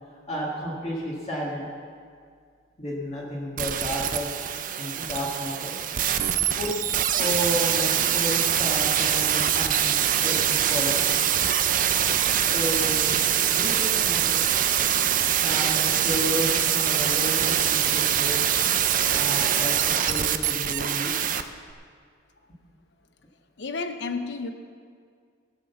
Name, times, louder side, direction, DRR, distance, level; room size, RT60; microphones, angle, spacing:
voice 1, 0.3-1.7 2.8-4.3 4.8-5.8 6.5-6.8 7.1-11.2 12.5-13.2 13.5-14.4 15.4-18.6 19.1-21.3, equal, 35° left, -5 dB, 1.6 m, -32 dB
sound 1, 3.6-21.4 21.7-21.8, right 10 dB, 45° right, 0.5 m, -24 dB
voice 2, 23.6-24.5, left 4 dB, 60° left, 8 dB, 0.7 m, -31 dB
16.5 x 6.3 x 6.9 m, 2.1 s
head